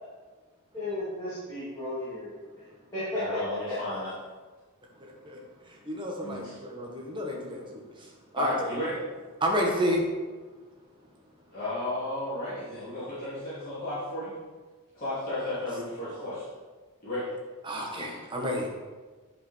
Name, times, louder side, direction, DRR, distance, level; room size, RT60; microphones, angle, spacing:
voice 1, 0.7-2.4 2.9-3.2 8.5-8.6, left 1 dB, 15° left, -12 dB, 2.6 m, -34 dB
voice 2, 3.1-4.1 6.2-6.5 8.3-9.0 11.5-14.3 14.9-16.6 17.0-17.3, left 1 dB, 40° left, -12 dB, 3.0 m, -33 dB
voice 3, 5.0-5.4 5.9-7.8 8.3-8.5 9.4-10.0 17.6-18.7, equal, 20° right, 0 dB, 1.4 m, -30 dB
10.5 x 5.2 x 4.5 m, 1.4 s
head